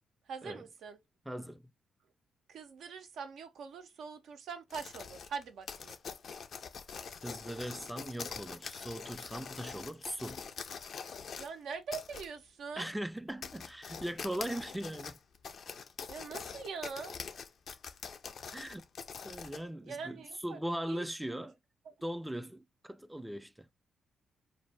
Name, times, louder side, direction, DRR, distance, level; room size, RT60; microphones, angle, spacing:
voice 1, 0.3-1.0 2.5-6.0 11.4-12.9 16.1-17.1 19.8-20.6 20.9-21.1 21.9-22.0, right 5 dB, 75° right, 0.5 m, -43 dB
voice 2, 1.3-1.7 7.2-10.4 12.8-15.2 18.5-18.8 19.2-21.6 22.0-23.7, right 1 dB, 10° right, 0.3 m, -39 dB
sound 1, 4.7-11.5 11.9-12.3 12.8-12.9 13.3-19.6, left 6 dB, 60° left, 0.4 m, -44 dB
2.6 x 2.0 x 3.2 m
hypercardioid pair, 45°, 0 cm